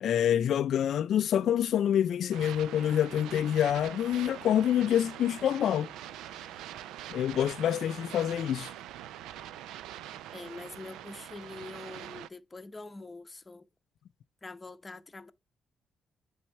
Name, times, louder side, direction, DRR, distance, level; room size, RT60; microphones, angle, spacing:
voice 1, 0.0-5.9 7.1-8.7, left 10 dB, 70° left, 0.3 m, -27 dB
sound 1, 1.4-4.3, right 5 dB, 65° right, 1.6 m, -59 dB
sound 2, 2.3-12.3, right 12 dB, 90° right, 0.3 m, -44 dB
voice 2, 10.3-13.7 14.4-15.3, left 3 dB, 20° left, 0.7 m, -44 dB
8.6 x 3.5 x 4.5 m
cardioid pair, 90°, 0 cm